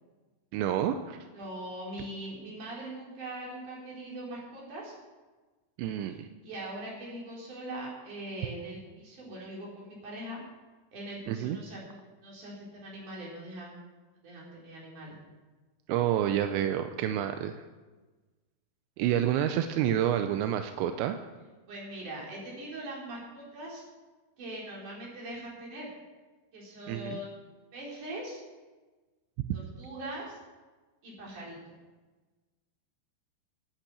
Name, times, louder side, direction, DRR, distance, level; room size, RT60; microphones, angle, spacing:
voice 1, 0.5-1.2 5.8-6.3 11.3-11.6 15.9-17.6 19.0-21.2 26.9-27.2, right 10 dB, 85° right, 8 dB, 2.9 m, -28 dB
voice 2, 1.3-4.9 6.1-10.4 10.9-13.9 14.2-15.2 21.7-23.8 24.4-25.9 26.5-27.4 27.7-28.4 29.5-30.4 31.0-31.6, right 1 dB, 45° right, -4 dB, 5.2 m, -41 dB
11.5 x 9.0 x 8.2 m, 1.2 s
omnidirectional pair, 5.1 m